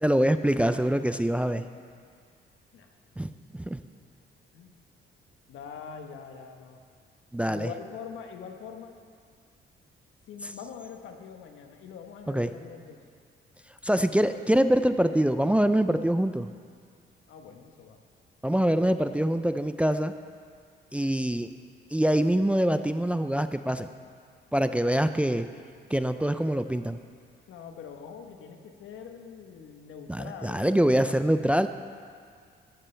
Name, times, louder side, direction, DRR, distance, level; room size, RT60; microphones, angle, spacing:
voice 1, 0.0-1.7 3.2-3.8 7.3-7.7 12.3-12.5 13.8-16.5 18.4-20.1 20.9-21.5 21.9-23.9 24.5-25.5 25.9-27.0 30.1-31.7, right 1 dB, 5° right, 10 dB, 0.4 m, -24 dB
voice 2, 5.5-6.8 7.5-8.9 10.3-13.0 15.8-16.0 17.3-18.0 18.6-19.4 27.5-31.5, left 6 dB, 80° left, 4 dB, 1.2 m, -44 dB
14.0 x 13.0 x 3.3 m, 2.1 s
cardioid pair, 90°, 20 cm